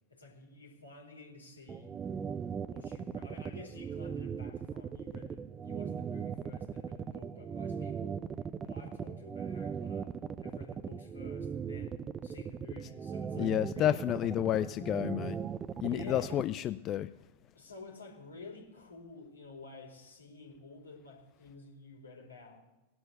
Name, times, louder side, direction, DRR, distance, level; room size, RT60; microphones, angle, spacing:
voice 1, 0.1-1.9 2.7-8.2 8.6-10.1 10.4-14.0 15.8-16.4 17.5-22.6, left 3 dB, 80° left, 0 dB, 4.3 m, -51 dB
sound 1, 1.7-16.4, right 7 dB, 20° right, 0.7 m, -38 dB
voice 2, 13.4-15.4 15.8-17.1, left 12 dB, 30° left, 13 dB, 0.4 m, -30 dB
18.0 x 11.5 x 6.7 m, 1.0 s
figure-of-eight pair, 90°, 0 cm